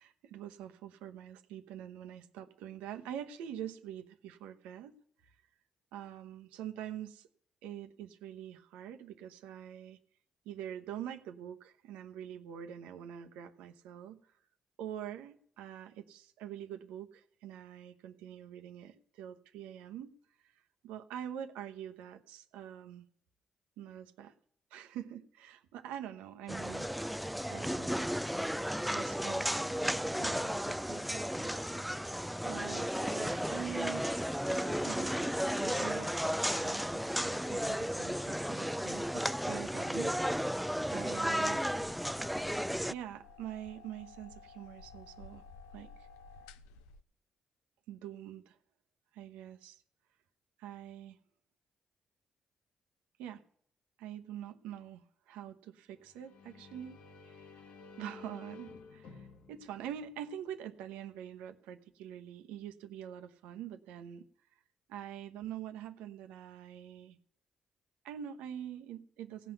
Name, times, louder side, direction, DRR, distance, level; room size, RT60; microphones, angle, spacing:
voice 1, 0.0-5.0 5.9-7.3 7.6-10.0 10.4-14.2 14.8-20.2 20.8-23.1 23.8-24.3 24.7-28.1 28.9-29.5 30.2-31.5 32.4-34.1 34.5-36.3 36.6-40.6 40.9-41.6 42.9-45.4 45.7-46.1 47.9-48.6 49.1-49.8 50.6-51.2 53.2-53.4 54.0-57.6 58.0-64.2 64.9-67.2 68.0-69.5, right 10 dB, 80° right, 9 dB, 0.9 m, -45 dB
sound 1, 26.5-42.9, equal, ahead, 0.4 m, -34 dB
sound 2, 41.5-47.0, left 4 dB, 85° left, 0.6 m, -54 dB
sound 3, 56.0-60.7, left 4 dB, 70° left, 1.3 m, -54 dB
16.5 x 6.0 x 9.2 m, 0.64 s
hypercardioid pair, 45°, 2 cm